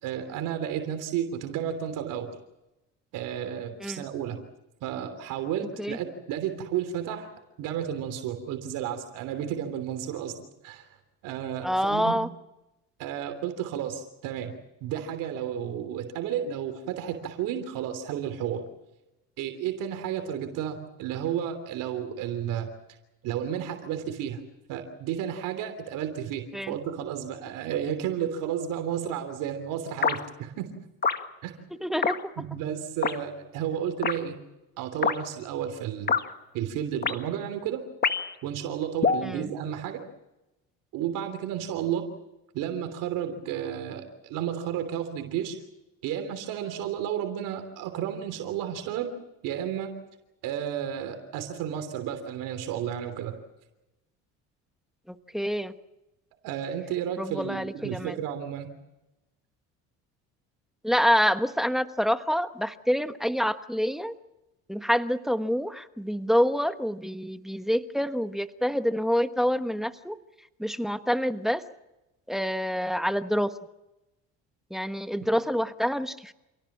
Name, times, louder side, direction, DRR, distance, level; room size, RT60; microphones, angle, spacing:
voice 1, 0.0-2.3 3.1-4.4 4.8-7.3 7.6-10.3 10.6-10.9 11.2-12.2 13.0-14.5 14.8-18.6 19.4-22.7 23.2-24.4 24.7-30.7 31.4-31.6 32.4-34.4 34.8-36.2 36.5-37.8 38.4-40.0 40.9-42.1 42.5-45.6 46.0-49.1 49.4-49.9 50.4-53.3 56.4-58.7, right 9 dB, 75° right, 8 dB, 3.2 m, -32 dB
voice 2, 11.6-12.3 26.5-26.7 31.8-32.2 39.2-39.5 55.1-55.7 57.2-58.2 60.8-64.1 64.7-70.2 70.6-71.6 72.3-73.5 74.7-76.3, equal, ahead, 10 dB, 1.2 m, -27 dB
sound 1, 30.0-30.2 31.0-31.2 32.0-32.2 33.0-33.2 34.0-34.2 35.0-35.2 36.1-36.2 37.0-37.2 38.0-38.3 39.0-39.2, left 5 dB, 30° left, 1.7 m, -24 dB
28.0 x 17.5 x 7.4 m, 0.96 s
cardioid pair, 105°, 32 cm